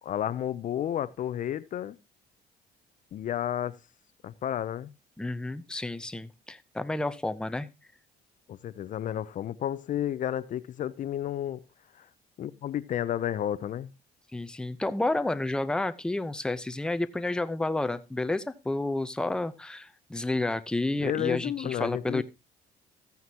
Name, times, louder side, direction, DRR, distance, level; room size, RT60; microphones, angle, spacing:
voice 1, 0.0-2.0 3.1-3.8 4.2-4.9 8.5-11.6 12.0-12.1 12.4-13.9 21.0-22.2, left 11 dB, 50° left, 0.5 m, -31 dB
voice 2, 5.2-7.7 14.3-22.2, left 2 dB, 5° left, 0.6 m, -30 dB
14.0 x 9.4 x 2.8 m
cardioid pair, 110°, 17 cm